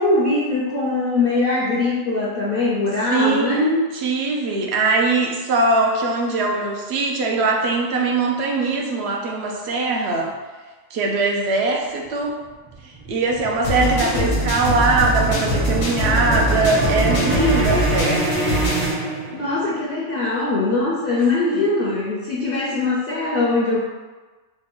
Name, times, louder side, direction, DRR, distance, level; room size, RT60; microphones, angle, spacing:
voice 1, 0.0-3.7 13.8-14.4 19.3-23.8, left 3 dB, 55° left, -5 dB, 0.7 m, -22 dB
voice 2, 3.1-10.3 10.9-12.4 12.8-18.5 21.5-21.6, right 3 dB, 65° right, 1 dB, 0.8 m, -21 dB
sound 1, 12.5-19.7, right 2 dB, 30° right, 0.8 m, -25 dB
sound 2, 13.6-18.9, equal, 75° left, 1.2 m, -23 dB
4.1 x 2.2 x 3.7 m, 1.3 s
omnidirectional pair, 1.4 m